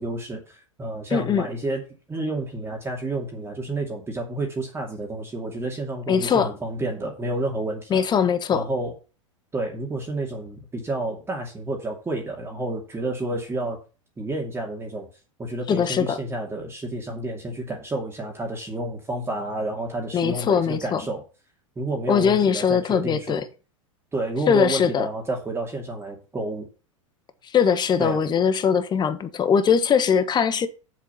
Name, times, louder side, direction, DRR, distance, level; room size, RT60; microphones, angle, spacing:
voice 1, 0.0-1.8 2.1-8.1 8.5-8.9 9.5-13.8 14.2-15.1 15.4-21.2 21.8-23.4 24.1-26.7 28.0-28.2, right 2 dB, 15° right, 2.4 m, -30 dB
voice 2, 1.1-1.5 6.1-6.5 7.9-8.6 15.7-16.2 20.1-21.0 22.1-23.4 24.5-25.1 27.5-30.7, left 7 dB, 25° left, 1.3 m, -21 dB
7.4 x 7.4 x 5.7 m
hypercardioid pair, 95°, 17 cm